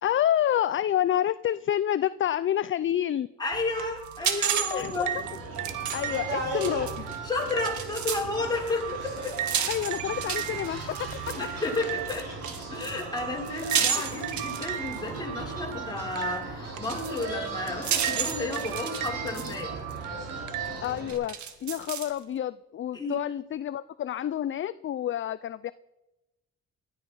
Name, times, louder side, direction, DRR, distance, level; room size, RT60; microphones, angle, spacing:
voice 1, 0.0-3.3 4.7-4.9 5.9-7.0 9.7-10.8 11.1-11.2 20.8-25.7, left 11 dB, 40° left, 15 dB, 0.5 m, -28 dB
voice 2, 3.4-5.1 7.2-9.4 11.4-12.3 12.7-19.7 22.9-23.2, left 2 dB, 15° left, -2 dB, 5.9 m, -32 dB
sound 1, 3.5-20.8, right 11 dB, 85° right, 1.1 m, -37 dB
sound 2, 4.1-8.3 8.6-15.2 16.3-16.4 16.8-19.6 19.9-20.0 20.8-22.2, right 8 dB, 70° right, 1.7 m, -32 dB
sound 3, 4.8-21.1, right 1 dB, 55° right, 5.9 m, -39 dB
19.5 x 13.0 x 5.6 m, 0.99 s
cardioid pair, 90°, 30 cm